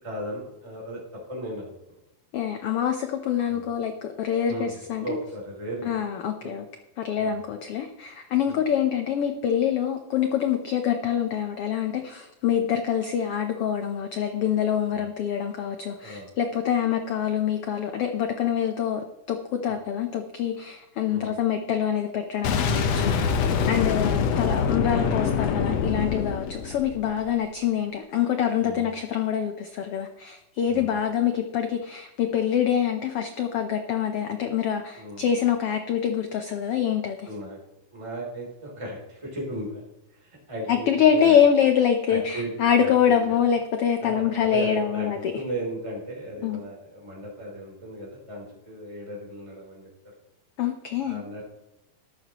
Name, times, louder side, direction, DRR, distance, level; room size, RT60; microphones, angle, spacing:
voice 1, 0.0-2.0 3.5-3.6 4.5-5.9 6.4-6.5 7.2-7.4 8.4-8.6 14.9-15.0 16.0-16.3 19.7-19.8 21.1-21.4 23.2-23.6 26.4-26.5 28.6-28.9 30.7-30.9 34.9-35.4 37.2-37.6 37.9-39.8 40.1-41.4 42.1-42.5 42.8-43.4 44.0-49.9 51.0-51.4, right 1 dB, 10° right, -3 dB, 3.1 m, -36 dB
voice 2, 2.3-5.2 5.9-6.6 7.0-19.0 19.3-23.4 23.7-37.3 40.7-45.2 46.4-46.6 50.6-51.2, left 8 dB, 85° left, 6 dB, 1.2 m, -25 dB
Boom, 22.4-27.3, left 6 dB, 65° left, 1.8 m, -25 dB
13.5 x 12.0 x 3.0 m, 0.93 s
omnidirectional pair, 3.7 m